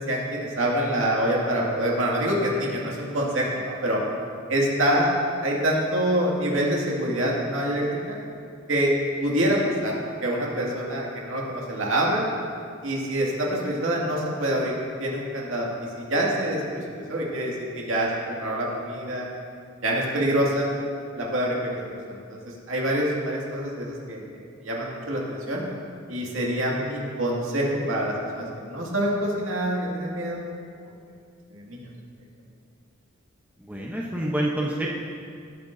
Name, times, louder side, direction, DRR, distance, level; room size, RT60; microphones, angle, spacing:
voice 1, 0.1-4.0 4.5-5.1 5.4-8.2 8.7-8.9 9.2-12.2 12.8-14.7 15.0-19.3 19.8-20.7 21.1-21.7 22.1-22.2 22.4-24.2 24.6-25.6 26.1-30.4 31.5-31.9, right 1 dB, 70° right, -3 dB, 2.2 m, -26 dB
voice 2, 33.7-34.9, right 1 dB, 10° right, -3 dB, 0.9 m, -28 dB
18.0 x 8.9 x 2.7 m, 2.3 s
head